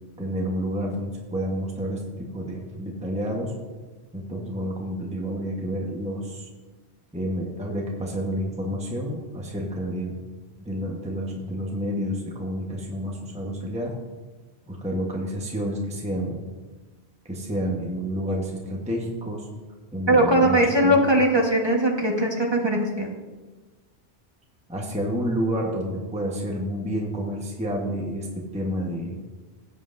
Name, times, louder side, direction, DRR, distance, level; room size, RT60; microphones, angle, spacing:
voice 1, 0.2-3.6 4.1-6.5 7.1-10.2 10.6-14.0 14.6-16.4 17.2-19.5 19.9-20.6 20.8-21.0 24.7-29.2, equal, 5° right, -1 dB, 1.1 m, -29 dB
voice 2, 20.1-23.1, right 1 dB, 25° right, 0 dB, 1.3 m, -20 dB
16.5 x 7.8 x 2.6 m, 1.3 s
omnidirectional pair, 1.1 m